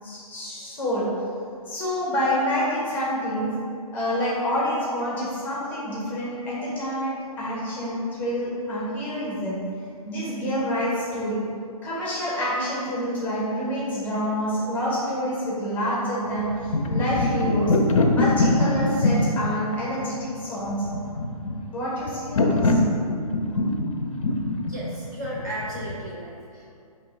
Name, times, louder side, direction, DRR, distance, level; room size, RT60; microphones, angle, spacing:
voice 1, 0.0-1.1 1.7-3.5 3.9-9.6 10.0-11.4 11.8-17.8 18.1-20.9 21.7-22.8 23.5-23.6, equal, 10° left, -7 dB, 0.7 m, -27 dB
sound 1, 16.4-26.1, left 2 dB, 60° left, 0.4 m, -23 dB
voice 2, 24.7-26.7, right 1 dB, 30° right, -5 dB, 0.4 m, -34 dB
4.3 x 2.8 x 3.3 m, 2.4 s
figure-of-eight pair, 130°, 19 cm